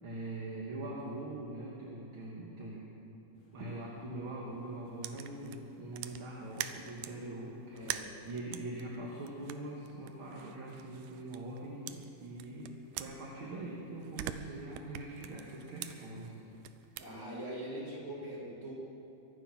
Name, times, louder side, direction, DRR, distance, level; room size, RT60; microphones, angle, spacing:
voice 1, 0.0-2.9 3.5-16.4 16.9-17.0, right 1 dB, 50° right, -4 dB, 2.1 m, -43 dB
sound 1, 3.3-7.5, left 2 dB, 55° left, 2.6 m, -61 dB
sound 2, 5.0-7.2 7.7-11.6 11.9-13.7 14.0-17.1, right 12 dB, 85° right, 2.1 m, -45 dB
voice 2, 7.7-8.2 17.0-18.7, right 1 dB, 25° right, -7 dB, 4.8 m, -42 dB
23.5 x 9.1 x 5.8 m, 3.0 s
omnidirectional pair, 3.7 m